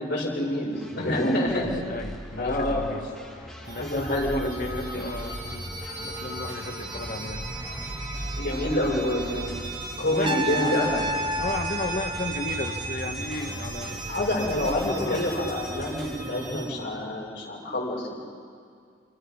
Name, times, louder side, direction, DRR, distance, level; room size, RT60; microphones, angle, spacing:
voice 1, 0.0-1.8 2.4-2.8 3.7-5.1 8.4-9.5 10.0-11.1 14.1-18.2, left 1 dB, 65° left, -4 dB, 7.1 m, -27 dB
sound 1, 0.7-16.1, equal, ahead, 4.2 m, -40 dB
voice 2, 0.9-7.5 10.0-11.0 11.4-14.1 14.4-14.5 14.9-15.3, left 2 dB, 45° left, 5 dB, 1.4 m, -34 dB
sound 2, 3.6-16.7, right 3 dB, 50° right, 7.5 m, -36 dB
Trumpet, 10.2-13.2, equal, 25° right, 0.8 m, -31 dB
27.0 x 25.0 x 5.8 m, 2.2 s
head